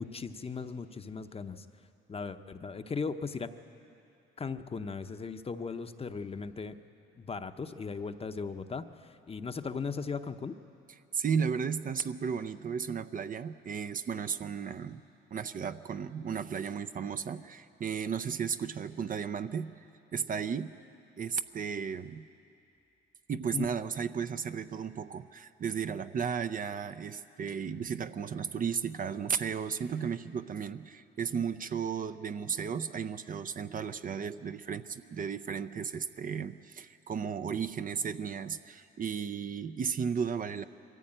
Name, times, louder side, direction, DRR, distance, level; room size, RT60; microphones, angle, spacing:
voice 1, 0.0-1.7 2.1-3.5 4.4-6.8 7.2-10.5 23.5-23.7, left 5 dB, 30° left, 9 dB, 0.8 m, -37 dB
voice 2, 11.1-15.0 15.3-19.8 20.1-20.7 21.1-22.3 23.3-40.6, right 6 dB, 45° right, 11 dB, 0.6 m, -34 dB
22.0 x 14.5 x 8.8 m, 2.7 s
cardioid pair, 90°, 20 cm